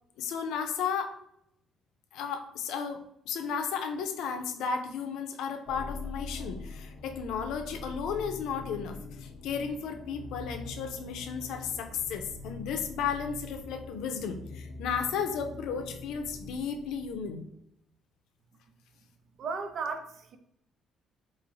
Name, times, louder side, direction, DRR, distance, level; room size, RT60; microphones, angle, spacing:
voice 1, 0.2-1.2 2.1-17.5, left 6 dB, 90° left, 0.5 m, -34 dB
sound 1, 5.6-17.5, left 3 dB, 50° left, 0.7 m, -43 dB
voice 2, 19.4-20.4, right 5 dB, 45° right, 0.4 m, -35 dB
4.1 x 3.1 x 2.6 m
cardioid pair, 175°, 0 cm